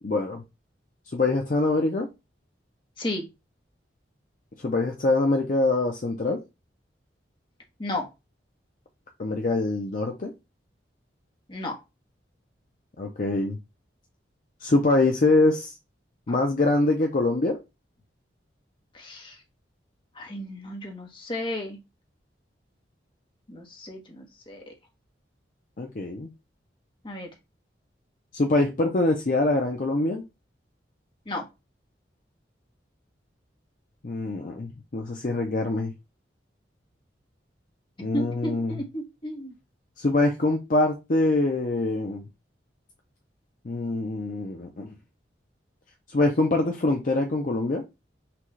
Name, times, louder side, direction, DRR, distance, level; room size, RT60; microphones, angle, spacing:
voice 1, 0.0-0.4 1.1-2.1 4.6-6.4 9.2-10.3 13.0-13.6 14.6-15.7 16.3-17.6 25.8-26.3 28.3-30.2 34.0-35.9 38.0-38.8 40.0-42.2 43.6-44.9 46.1-47.8, left 2 dB, 45° left, 0.6 m, -24 dB
voice 2, 11.5-11.8 18.9-19.4 20.1-21.8 23.5-24.7 27.0-27.3 31.3-31.4 38.1-39.5, left 1 dB, 25° left, 1.0 m, -33 dB
5.9 x 2.4 x 3.1 m
head